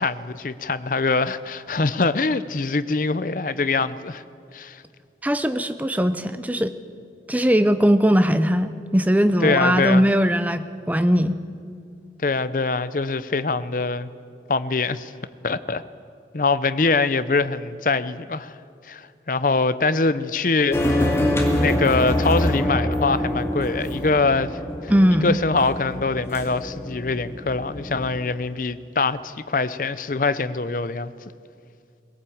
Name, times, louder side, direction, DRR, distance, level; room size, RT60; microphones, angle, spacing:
voice 1, 0.0-4.2 4.5-4.8 9.4-10.1 12.2-14.1 14.5-15.1 15.4-15.8 16.3-18.5 18.8-21.1 21.6-24.9 25.2-31.1, left 3 dB, 50° left, 14 dB, 0.6 m, -23 dB
voice 2, 5.2-6.7 7.3-11.4 24.9-25.3, equal, 10° right, 11 dB, 0.7 m, -19 dB
sound 1, 20.7-28.2, left 1 dB, 15° left, 2.2 m, -25 dB
20.5 x 17.5 x 8.6 m, 2.4 s
head